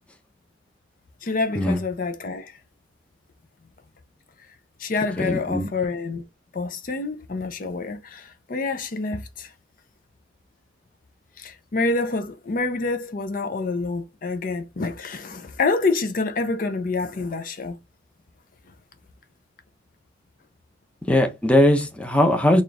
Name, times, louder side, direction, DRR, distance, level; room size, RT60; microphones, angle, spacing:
voice 1, 1.2-2.6 4.8-6.2 6.5-9.5 11.4-17.8, left 3 dB, 45° left, 0.5 m, -27 dB
voice 2, 5.2-5.7 21.1-22.6, left 1 dB, 5° left, 0.7 m, -19 dB
4.3 x 2.4 x 3.4 m
head